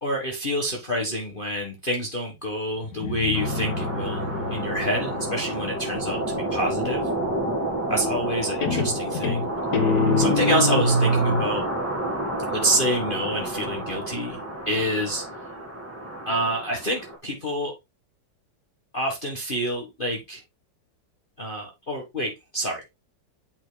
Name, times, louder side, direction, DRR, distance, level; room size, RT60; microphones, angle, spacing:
voice 1, 0.0-7.1 7.9-9.5 10.2-11.6 12.5-14.4 14.7-15.3 16.3-17.7 18.9-20.4 21.4-22.9, equal, 30° left, 1.6 m, -27 dB
Guitar, 2.8-6.4 8.0-8.4 8.6-11.6, left 2 dB, 50° left, 1.6 m, -26 dB
sound 1, 3.3-17.2, right 1 dB, 5° right, 2.0 m, -30 dB
9.3 x 5.9 x 2.2 m
omnidirectional pair, 2.1 m